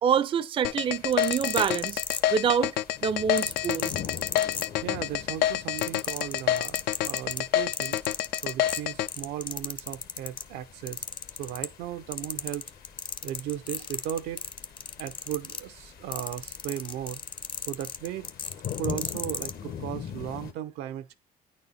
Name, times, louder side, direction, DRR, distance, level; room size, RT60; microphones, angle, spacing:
voice 1, 0.0-2.0 2.3-2.7 3.0-3.9, right 7 dB, 30° right, 0.4 m, -26 dB
sound 1, 0.6-9.1, left 12 dB, 85° left, 0.4 m, -27 dB
sound 2, 0.7-20.5, left 8 dB, 65° left, 0.9 m, -44 dB
sound 3, 0.9-2.7 3.4-5.1 5.4-10.5 10.9-11.9 12.1-19.5 20.3-20.4, left 5 dB, 30° left, 0.5 m, -35 dB
voice 2, 4.8-8.0 8.4-11.0 11.4-12.7 13.2-14.4 15.0-17.2 17.7-18.3 18.8-21.1, right 11 dB, 85° right, 0.6 m, -36 dB
9.0 x 4.2 x 4.1 m
cardioid pair, 110°, 17 cm